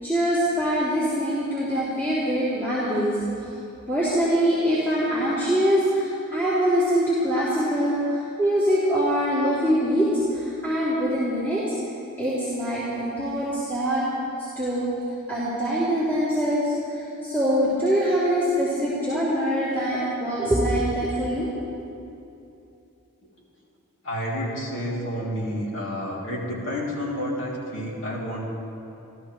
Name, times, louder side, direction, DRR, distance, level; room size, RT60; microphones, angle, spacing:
voice 1, 0.0-3.2 3.9-11.6 12.2-14.0 14.6-14.9 15.3-21.5, equal, 10° left, -12 dB, 3.2 m, -23 dB
voice 2, 24.0-28.4, equal, 60° left, -4 dB, 3.2 m, -30 dB
27.5 x 14.0 x 3.3 m, 2.8 s
head